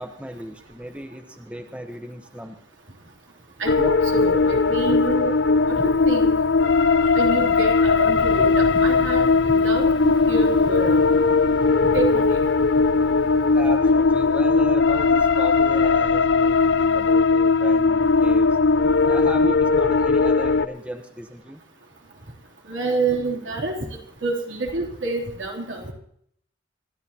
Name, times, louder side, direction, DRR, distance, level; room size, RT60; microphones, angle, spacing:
voice 1, 0.0-2.6 13.5-18.6 19.0-21.6, equal, 5° right, 5 dB, 1.0 m, -35 dB
voice 2, 3.6-5.3 5.7-6.3 7.1-11.0 11.9-12.4 22.7-23.7 24.2-25.9, right 3 dB, 85° right, 0 dB, 3.2 m, -27 dB
sound 1, 3.7-20.7, left 4 dB, 75° left, 0.6 m, -19 dB
sound 2, 8.1-14.2, left 1 dB, 25° left, 1.0 m, -38 dB
26.0 x 13.0 x 2.9 m, 0.68 s
head